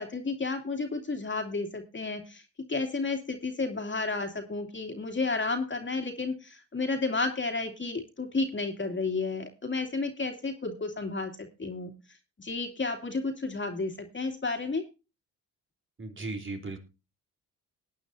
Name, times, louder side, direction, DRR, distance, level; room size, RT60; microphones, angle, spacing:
voice 1, 0.0-2.4 2.7-11.9 12.4-14.8, left 3 dB, 30° left, 6 dB, 2.6 m, -32 dB
voice 2, 16.0-16.8, right 3 dB, 35° right, 4 dB, 3.5 m, -36 dB
19.0 x 9.3 x 2.7 m, 0.29 s
supercardioid pair, 65°, 36 cm